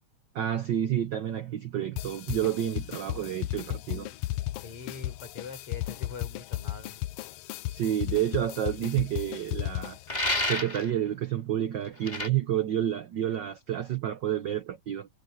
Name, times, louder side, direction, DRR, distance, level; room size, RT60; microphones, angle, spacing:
voice 1, 0.3-4.1 7.7-10.0 10.5-15.1, right 11 dB, 80° right, 1.0 m, -29 dB
sound 1, 2.0-10.1, left 16 dB, 90° left, 1.3 m, -35 dB
voice 2, 4.6-7.0, left 5 dB, 50° left, 5.5 m, -43 dB
sound 2, 10.1-10.9 12.0-12.3, left 2 dB, 15° left, 2.4 m, -29 dB
omnidirectional pair, 3.3 m